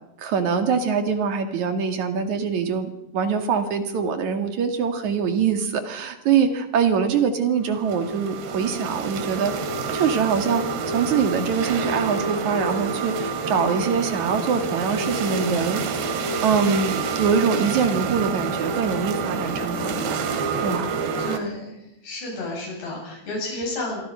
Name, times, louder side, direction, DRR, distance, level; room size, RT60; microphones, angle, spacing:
voice 1, 0.2-9.5 9.9-16.0 16.4-20.2 20.6-20.9, right 6 dB, 50° right, 7 dB, 3.0 m, -24 dB
sound 1, 7.6-21.4, right 4 dB, 80° right, 4.1 m, -28 dB
voice 2, 21.2-21.8 22.0-24.0, left 1 dB, 70° left, -1 dB, 10.0 m, -31 dB
27.5 x 23.5 x 5.7 m, 0.86 s
omnidirectional pair, 4.9 m